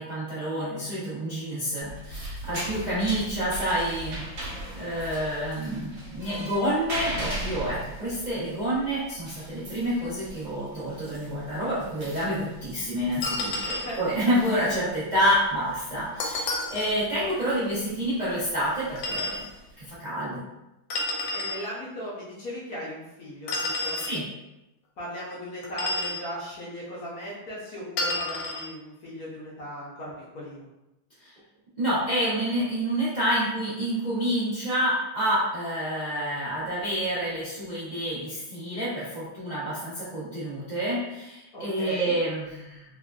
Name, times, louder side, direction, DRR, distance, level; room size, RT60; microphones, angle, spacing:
voice 1, 0.0-19.4 19.8-20.4 24.0-24.2 31.2-31.3 31.8-42.8, equal, 75° right, -12 dB, 0.4 m, -28 dB
sound 1, 1.8-19.9, right 1 dB, 55° right, 1.2 m, -40 dB
sound 2, 13.2-14.0 16.2-16.9 19.0-19.4 20.9-21.6 23.5-24.2 25.6-26.2 28.0-28.7, left 2 dB, 80° left, 1.3 m, -30 dB
voice 2, 13.6-14.0 21.3-24.0 25.0-30.7 41.5-42.1, equal, 65° left, -6 dB, 1.0 m, -37 dB
3.4 x 2.5 x 2.2 m, 0.95 s
omnidirectional pair, 2.2 m